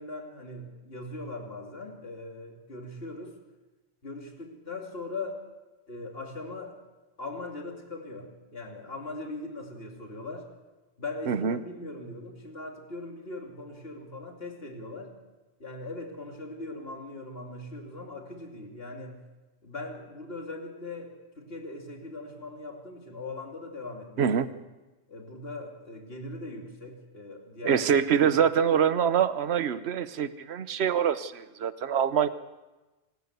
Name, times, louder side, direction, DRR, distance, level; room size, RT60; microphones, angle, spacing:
voice 1, 0.0-3.4 4.0-5.4 5.9-6.8 7.2-10.5 11.0-15.2 15.6-19.3 19.6-24.2 25.1-27.9 28.2-28.4, left 2 dB, 60° left, 2 dB, 3.0 m, -40 dB
voice 2, 11.3-11.6 24.2-24.5 27.6-32.3, right 8 dB, 70° right, 13 dB, 1.2 m, -25 dB
26.5 x 13.5 x 8.1 m, 1.1 s
omnidirectional pair, 1.1 m